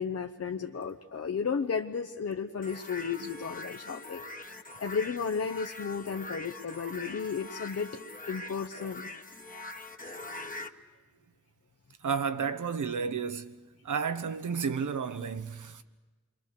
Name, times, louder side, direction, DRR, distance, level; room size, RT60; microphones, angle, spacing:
voice 1, 0.0-4.3 4.8-8.0 8.3-9.1, left 6 dB, 55° left, 0.9 m, -33 dB
sound 1, 2.6-10.7, left 2 dB, 25° left, 1.3 m, -43 dB
voice 2, 12.0-13.6 13.8-15.8, right 6 dB, 80° right, 1.0 m, -32 dB
28.5 x 23.0 x 6.7 m
cardioid pair, 65°, 30 cm